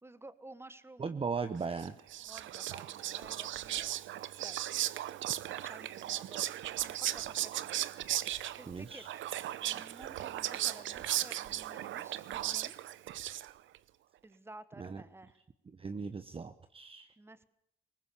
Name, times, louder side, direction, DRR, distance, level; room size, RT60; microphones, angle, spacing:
voice 1, 0.0-1.1 2.3-4.6 5.5-6.5 6.8-7.7 8.6-9.3 9.6-12.7 14.2-15.4 17.2-17.4, right 2 dB, 10° right, 13 dB, 1.4 m, -53 dB
voice 2, 1.0-1.9 8.7-9.1 14.8-15.0 15.8-17.1, right 5 dB, 30° right, 10 dB, 0.9 m, -38 dB
Whispering, 1.8-13.8, right 13 dB, 75° right, 0.8 m, -37 dB
21.5 x 19.0 x 7.0 m, 0.76 s
cardioid pair, 90°, 20 cm